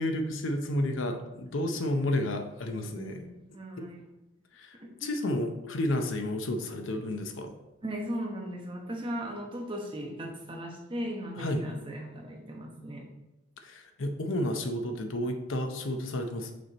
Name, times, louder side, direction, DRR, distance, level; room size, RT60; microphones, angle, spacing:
voice 1, 0.0-3.3 4.5-4.7 5.0-7.5 11.4-11.7 13.6-16.5, left 1 dB, 75° left, 5 dB, 0.7 m, -31 dB
voice 2, 3.0-4.0 4.8-5.1 7.8-13.0, equal, 25° right, 0 dB, 1.0 m, -37 dB
6.3 x 4.3 x 4.1 m, 0.96 s
head